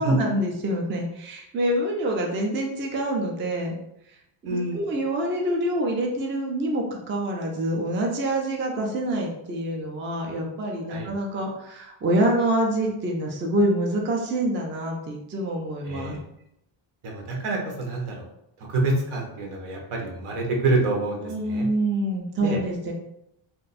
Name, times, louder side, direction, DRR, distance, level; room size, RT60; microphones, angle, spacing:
voice 1, 0.0-3.8 4.4-16.2 21.2-22.9, right 1 dB, 25° right, 1 dB, 0.3 m, -26 dB
voice 2, 4.4-4.9 10.9-11.1 15.8-16.2 17.0-18.3 18.7-21.7 22.4-22.6, right 2 dB, 80° right, 0 dB, 1.0 m, -27 dB
2.6 x 2.2 x 4.0 m, 0.81 s
cardioid pair, 165°, 50 cm